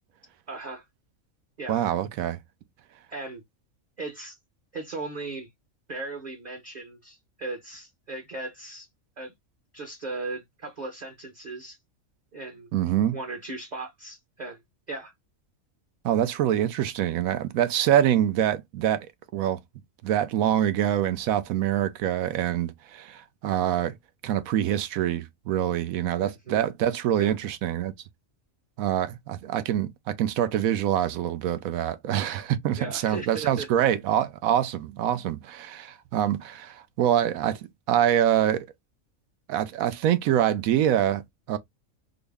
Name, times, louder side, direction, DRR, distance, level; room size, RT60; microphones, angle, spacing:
voice 1, 0.5-0.8 1.6-1.8 3.1-3.4 4.0-4.4 4.7-5.5 5.9-8.9 9.2-9.3 9.7-11.8 12.3-12.7 13.1-14.6 14.9-15.1 26.2-26.6 27.2-27.3 32.8-33.9, right 3 dB, 40° right, 0.8 m, -37 dB
voice 2, 1.7-2.4 12.7-13.2 16.0-19.1 19.3-19.6 20.0-23.9 24.2-27.9 28.8-37.6 37.9-38.7 39.5-41.2 41.5-41.6, right 11 dB, 85° right, 1.1 m, -25 dB
3.9 x 2.0 x 3.4 m
omnidirectional pair, 1.4 m